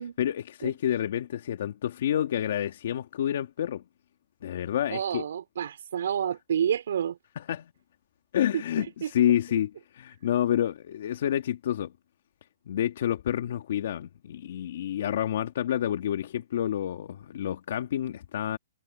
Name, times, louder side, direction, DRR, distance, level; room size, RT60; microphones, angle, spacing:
voice 1, 0.2-3.8 4.4-5.3 7.4-7.7 8.3-11.9 12.7-18.6, left 10 dB, 55° left, 2.0 m, -29 dB
voice 2, 4.9-7.2 8.5-8.6 9.0-9.1, right 9 dB, 65° right, 3.4 m, -29 dB
hypercardioid pair, 165°, 0 cm